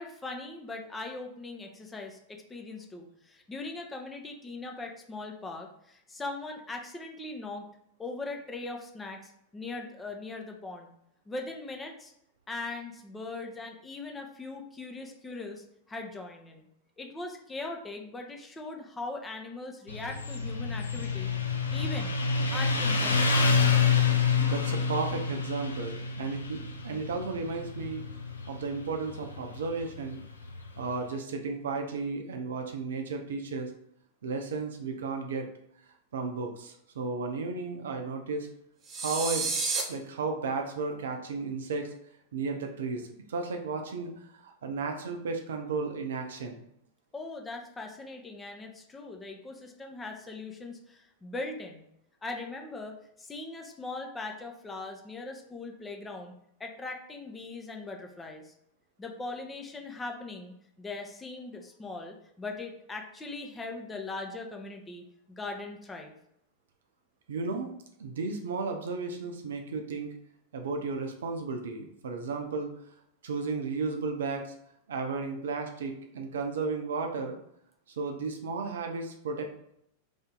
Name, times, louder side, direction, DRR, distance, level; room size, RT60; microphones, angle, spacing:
voice 1, 0.0-7.7 8.0-10.9 11.3-12.1 12.5-16.7 17.0-21.3 21.7-22.1 22.5-23.6 47.1-51.8 52.2-56.3 56.6-58.5 59.0-66.1, left 3 dB, 15° left, 2 dB, 0.6 m, -40 dB
Motorcycle, 19.9-31.0, left 5 dB, 75° left, 0.5 m, -28 dB
voice 2, 24.4-28.1 28.5-30.2 30.8-33.7 34.2-35.5 36.1-38.5 39.0-39.5 39.9-41.9 42.3-46.6 67.3-67.7 68.0-70.1 70.5-72.7 73.2-74.5 74.9-77.4 78.0-79.7, right 4 dB, 65° right, 4 dB, 0.6 m, -34 dB
sound 1, 38.9-39.8, right 4 dB, 30° right, 0.7 m, -30 dB
3.3 x 2.7 x 3.7 m, 0.76 s
figure-of-eight pair, 90°, 0 cm